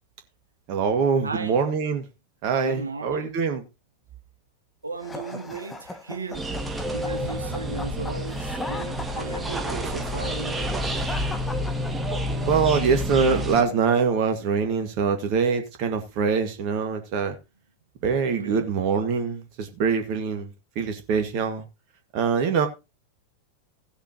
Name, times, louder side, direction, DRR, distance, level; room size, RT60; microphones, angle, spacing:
voice 1, 0.7-2.0 2.4-3.6 12.4-17.4 18.0-20.5 20.8-21.6 22.1-22.7, right 5 dB, 45° right, 1.7 m, -24 dB
voice 2, 1.2-1.6 2.6-3.3 4.8-6.4 6.9-10.6 18.3-18.7, right 4 dB, 75° right, 2.1 m, -35 dB
sound 1, 5.0-12.4, left 2 dB, 10° left, 1.8 m, -38 dB
sound 2, 6.3-13.6, equal, 10° right, 1.8 m, -29 dB
16.5 x 8.0 x 2.9 m
figure-of-eight pair, 90°, 0 cm